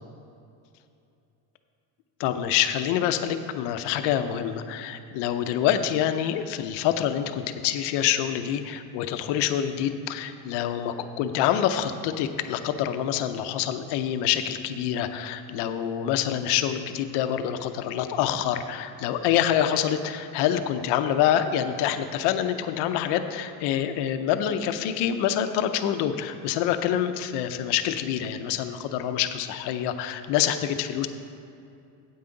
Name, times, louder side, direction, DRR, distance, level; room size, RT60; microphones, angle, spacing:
voice 1, 2.2-31.1, left 10 dB, 60° left, 9 dB, 0.6 m, -26 dB
9.4 x 8.6 x 3.9 m, 2.6 s
cardioid pair, 175°, 48 cm